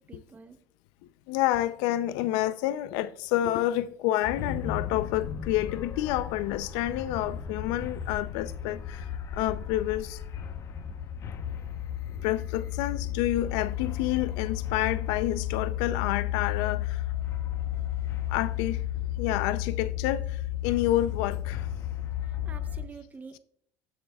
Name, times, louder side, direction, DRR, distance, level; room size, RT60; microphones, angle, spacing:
voice 1, 0.1-0.6 22.2-23.4, right 5 dB, 25° right, 0.9 m, -47 dB
voice 2, 1.3-10.2 12.2-17.0 18.3-18.8 19.2-21.7, left 14 dB, 85° left, 0.5 m, -29 dB
sound 1, 4.2-22.9, left 11 dB, 45° left, 0.9 m, -33 dB
18.5 x 7.4 x 2.3 m
cardioid pair, 120°, 7 cm